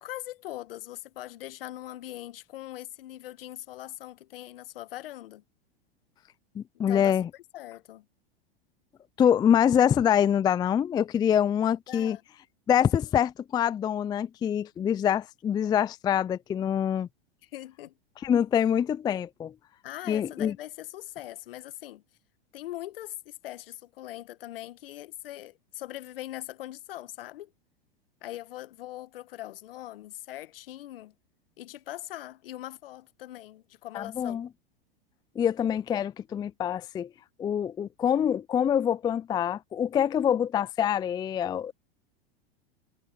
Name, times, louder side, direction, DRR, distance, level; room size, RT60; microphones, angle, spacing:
voice 1, 0.0-5.4 6.9-7.2 7.5-8.0 11.9-12.2 17.4-17.9 19.8-22.0 22.5-27.5 28.2-31.1 31.6-34.4, left 14 dB, 70° left, 1.5 m, -41 dB
voice 2, 6.6-7.3 9.2-12.2 12.7-17.1 18.2-19.5 20.1-20.6 33.9-34.5 35.4-37.1 37.4-41.7, left 9 dB, 15° left, 0.4 m, -25 dB
hypercardioid pair, 100°, 30 cm